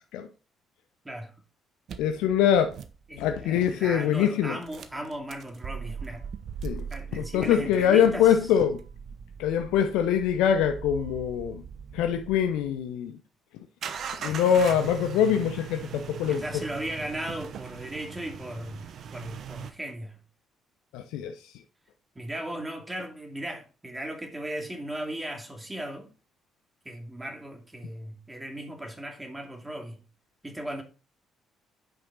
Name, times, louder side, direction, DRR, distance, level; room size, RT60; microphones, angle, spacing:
sound 1, 1.9-3.6 4.6-12.8 13.8-19.7, right 7 dB, 55° right, 0.9 m, -40 dB
voice 1, 2.0-2.7 3.2-4.6 6.6-6.8 7.1-8.8 9.4-11.6 11.9-13.2 14.2-16.4 20.9-21.4, left 9 dB, 65° left, 0.6 m, -24 dB
voice 2, 3.1-6.2 6.9-8.4 16.3-18.8 19.1-20.2 22.1-26.1 26.8-30.0 30.4-30.8, right 1 dB, 15° right, 2.6 m, -37 dB
8.8 x 6.0 x 4.0 m
figure-of-eight pair, 45°, 0 cm